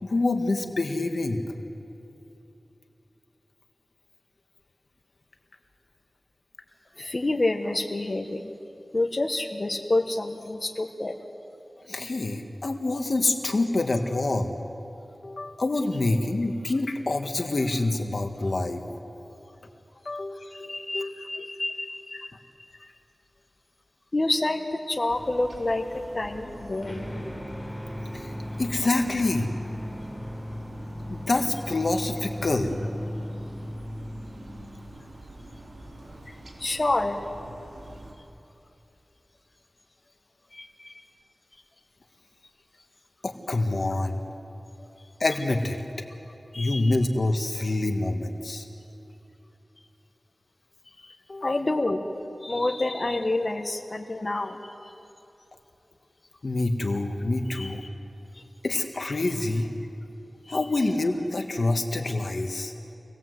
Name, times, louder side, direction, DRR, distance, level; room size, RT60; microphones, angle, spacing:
voice 1, 0.0-1.4 11.9-14.5 15.2-18.8 20.0-20.5 20.9-21.1 22.1-22.2 28.1-28.3 28.6-29.5 31.1-32.8 43.2-44.2 45.2-45.8 46.5-48.6 51.3-51.6 56.4-57.8 58.6-59.7 60.5-62.7, left 2 dB, 65° left, 4 dB, 1.6 m, -26 dB
voice 2, 7.0-8.5 8.9-11.1 20.5-22.3 24.1-25.8 26.1-27.1 36.6-37.2 40.5-41.0 46.5-46.9 51.0-51.1 51.4-52.1 52.4-54.9 57.5-57.9 60.5-60.6, left 2 dB, 45° left, 3 dB, 1.6 m, -28 dB
sound 1, 25.1-38.1, right 1 dB, 75° right, 3.7 m, -45 dB
sound 2, 26.8-35.1, equal, 5° left, 4.8 m, -37 dB
27.5 x 19.0 x 8.0 m, 2.9 s
wide cardioid pair, 50°, 0 cm